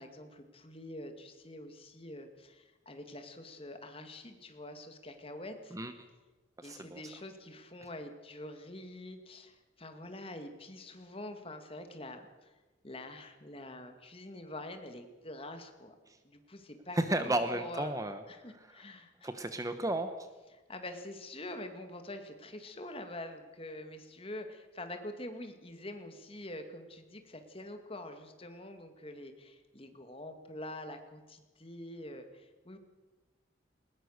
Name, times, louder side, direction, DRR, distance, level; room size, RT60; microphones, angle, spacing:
voice 1, 0.0-5.8 6.6-12.5 12.8-16.0 16.2-17.9 18.3-19.3 20.5-32.8, left 1 dB, 30° left, 7 dB, 2.1 m, -46 dB
voice 2, 6.6-7.0 16.9-18.2 19.2-20.1, right 1 dB, 15° right, 9 dB, 1.0 m, -32 dB
20.5 x 20.0 x 6.6 m, 1.2 s
head